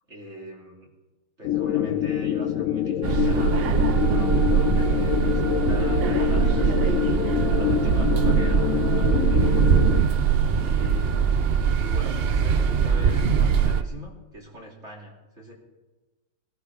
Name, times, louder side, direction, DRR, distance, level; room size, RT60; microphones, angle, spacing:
voice 1, 0.1-0.9 1.4-3.7 4.0-7.1 7.5-9.7 10.5-11.4 11.7-15.5, right 1 dB, 40° right, -3 dB, 3.2 m, -41 dB
sound 1, 1.4-10.0, left 11 dB, 65° left, 0.8 m, -26 dB
sound 2, 3.0-13.8, right 7 dB, 60° right, 0.6 m, -22 dB
23.0 x 14.0 x 3.6 m, 1.2 s
omnidirectional pair, 2.0 m